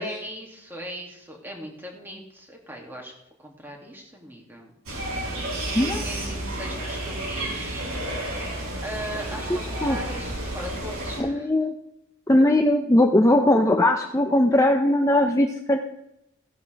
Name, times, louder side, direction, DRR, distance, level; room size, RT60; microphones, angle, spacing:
voice 1, 0.0-3.1 3.4-4.7 5.7-7.9 8.8-11.5, equal, 10° right, 0 dB, 2.7 m, -38 dB
sound 1, 4.9-11.2, right 1 dB, 80° right, 6.1 m, -31 dB
voice 2, 9.5-10.0 11.2-11.7 12.3-15.8, left 1 dB, 15° left, 4 dB, 0.7 m, -20 dB
16.5 x 10.5 x 3.5 m, 0.80 s
head